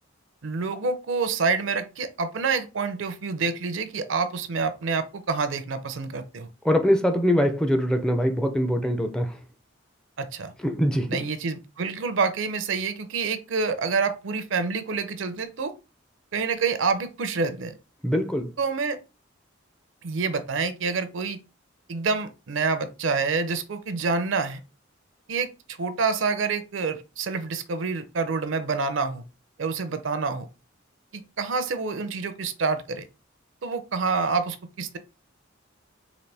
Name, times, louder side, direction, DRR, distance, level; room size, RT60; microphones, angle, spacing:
voice 1, 0.4-6.5 10.2-10.5 11.1-15.7 16.3-17.7 18.6-19.0 20.0-21.4 21.9-24.6 25.3-29.2 29.6-30.5 31.1-33.1 33.6-35.0, right 4 dB, 70° right, 0.5 m, -27 dB
voice 2, 6.6-9.4 10.6-11.2 18.0-18.5, equal, 5° left, 0.4 m, -23 dB
3.9 x 2.5 x 3.3 m
head